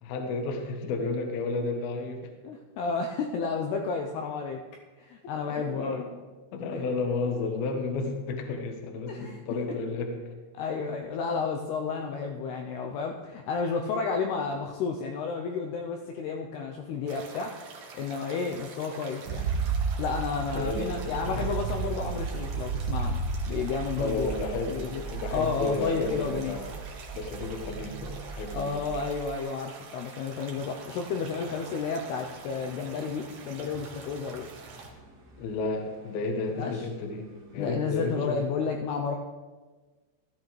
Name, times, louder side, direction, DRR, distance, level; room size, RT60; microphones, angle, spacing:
voice 1, 0.0-2.3 5.5-6.1 6.5-10.2 20.5-21.5 24.0-26.8 27.1-28.8 35.4-38.4, left 3 dB, 65° left, 3 dB, 2.7 m, -32 dB
voice 2, 2.4-4.6 5.0-6.0 6.7-6.9 9.1-9.4 10.5-17.6 17.9-19.4 20.0-24.3 24.7-25.0 25.3-26.6 28.5-34.5 36.6-36.8 37.6-39.2, left 5 dB, 85° left, 2 dB, 2.3 m, -31 dB
sound 1, 17.1-34.9, right 4 dB, 65° right, 2.0 m, -46 dB
sound 2, 19.3-29.4, right 5 dB, 85° right, 3.1 m, -34 dB
sound 3, 30.5-37.7, right 2 dB, 50° right, 1.2 m, -54 dB
16.0 x 13.0 x 3.3 m, 1.3 s
omnidirectional pair, 5.5 m